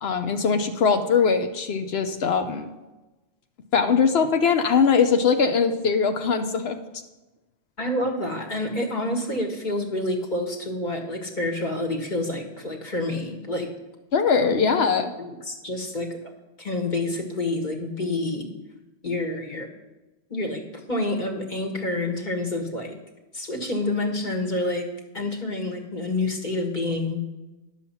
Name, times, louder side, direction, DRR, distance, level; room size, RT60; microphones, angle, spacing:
voice 1, 0.0-2.7 3.7-6.8 14.1-15.1, left 5 dB, 85° left, 6 dB, 1.0 m, -21 dB
voice 2, 7.8-13.7 14.4-16.3 16.6-18.5 19.0-19.7 20.3-23.0 23.3-24.9 25.1-27.2, left 2 dB, 50° left, 1 dB, 1.8 m, -28 dB
11.0 x 7.4 x 5.6 m, 1.1 s
omnidirectional pair, 1.0 m